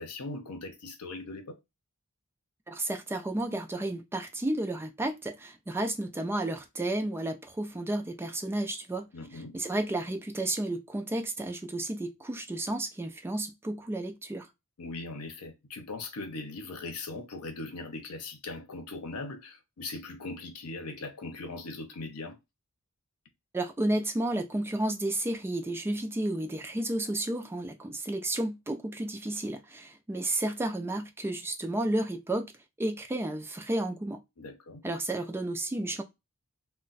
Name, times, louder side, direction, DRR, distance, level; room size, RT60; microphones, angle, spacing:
voice 1, 0.0-1.6 9.1-9.6 14.8-22.4 34.4-34.8, left 3 dB, 85° left, 0.7 m, -40 dB
voice 2, 2.7-14.5 23.5-32.5 32.8-34.2 34.8-36.0, right 1 dB, 10° right, 0.3 m, -32 dB
2.2 x 2.1 x 3.9 m
head